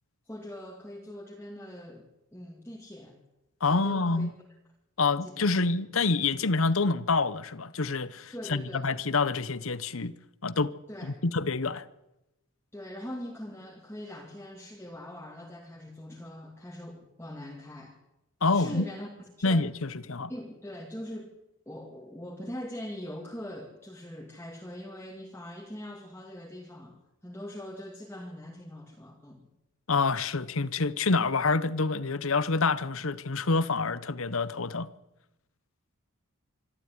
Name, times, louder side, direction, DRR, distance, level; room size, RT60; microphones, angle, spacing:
voice 1, 0.3-3.2 3.7-4.3 5.2-5.5 8.3-8.9 10.9-11.1 12.7-18.0 18.5-19.1 19.4-19.7 20.3-21.3 21.7-29.5, left 1 dB, 10° left, 2.3 m, -42 dB
voice 2, 3.6-4.3 5.0-10.1 10.4-10.7 11.0-11.9 18.4-18.8 19.4-20.3 29.9-34.9, left 3 dB, 70° left, 1.0 m, -27 dB
25.5 x 13.0 x 9.7 m
head